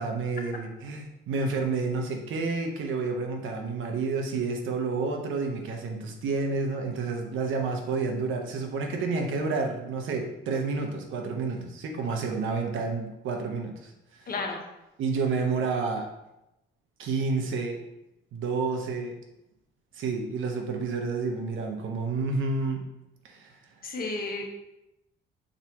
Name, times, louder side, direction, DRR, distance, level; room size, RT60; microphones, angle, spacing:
voice 1, 0.0-14.3 15.0-16.1 17.0-17.8 18.3-19.2 19.9-22.8 23.2-23.6, right 4 dB, 80° right, 3 dB, 1.1 m, -30 dB
voice 2, 14.3-14.6 23.8-24.4, left 3 dB, 50° left, 1 dB, 1.4 m, -32 dB
6.6 x 4.7 x 3.1 m, 0.89 s
cardioid pair, 90°, 20 cm